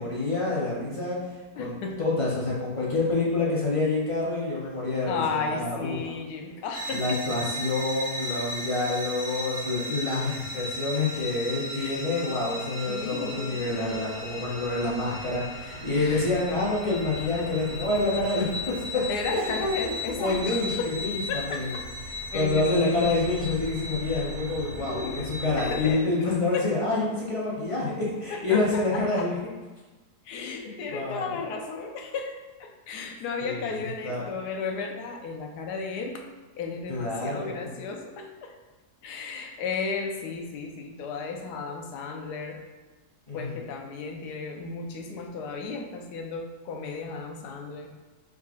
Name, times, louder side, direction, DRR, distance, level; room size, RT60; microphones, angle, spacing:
voice 1, 0.0-6.0 6.9-19.0 19.3-19.5 20.2-21.7 22.3-29.3 30.4-30.5 30.9-31.3 33.4-34.2 36.9-37.8 43.3-43.6, left 2 dB, 50° left, -6 dB, 0.3 m, -27 dB
voice 2, 1.6-2.0 5.1-7.2 11.7-12.0 12.8-13.7 15.9-16.3 19.1-20.9 21.3-21.9 22.3-23.1 24.8-26.0 26.5-26.7 28.3-29.3 30.2-32.3 32.6-36.2 36.6-38.6 39.0-42.6 43.3-47.9, left 4 dB, 85° left, 3 dB, 1.2 m, -34 dB
sound 1, 6.7-25.9, left 1 dB, 35° right, 0.8 m, -36 dB
4.6 x 3.6 x 2.4 m, 1.2 s
omnidirectional pair, 1.7 m